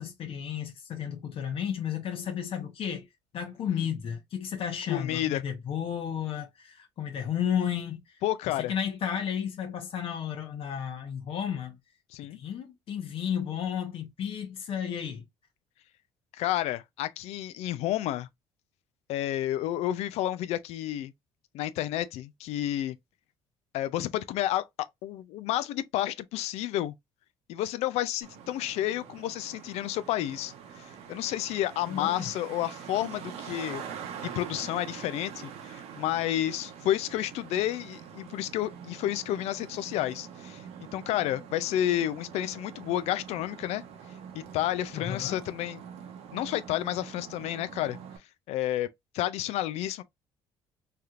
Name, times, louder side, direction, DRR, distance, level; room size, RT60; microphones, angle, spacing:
voice 1, 0.0-3.1 3.3-8.2 8.6-11.8 12.3-15.2 31.9-32.2 44.9-45.4, left 8 dB, 60° left, 0.9 m, -33 dB
voice 2, 4.9-5.4 8.2-8.7 12.1-12.4 16.3-18.3 19.1-21.1 21.5-23.0 23.7-24.7 25.0-26.9 27.5-33.8 34.3-40.6 40.9-43.8 44.3-45.8 46.3-48.0 48.5-48.9 49.1-50.0, left 13 dB, 75° left, 0.4 m, -30 dB
Traffic noise roadway noise, 28.2-48.2, right 8 dB, 70° right, 0.9 m, -45 dB
3.3 x 2.8 x 2.4 m
cardioid pair, 95°, 11 cm